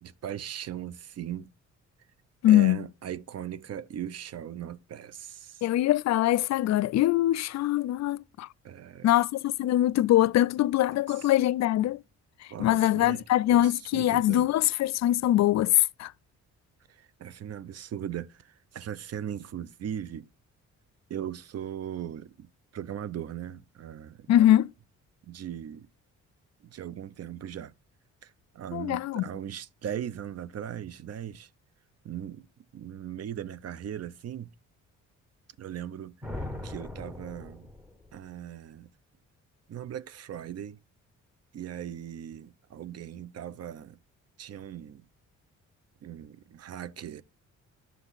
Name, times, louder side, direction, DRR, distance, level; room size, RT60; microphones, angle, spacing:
voice 1, 0.0-1.5 2.5-5.6 8.6-9.1 11.2-11.3 12.5-13.2 13.6-14.5 16.9-20.3 21.1-24.4 25.2-25.9 26.6-27.7 28.2-31.5 32.0-32.5 32.7-34.5 35.6-37.7 38.1-38.9 39.7-40.8 41.5-44.0 44.4-45.0 46.0-47.2, right 10 dB, 55° right, 0.7 m, -39 dB
voice 2, 2.4-2.8 5.6-8.5 9.0-12.0 12.6-16.1 24.3-24.7 28.7-29.2, left 13 dB, 65° left, 0.5 m, -23 dB
sound 1, 36.2-38.2, left 1 dB, 5° right, 2.0 m, -39 dB
10.0 x 7.1 x 4.0 m
cardioid pair, 90°, 30 cm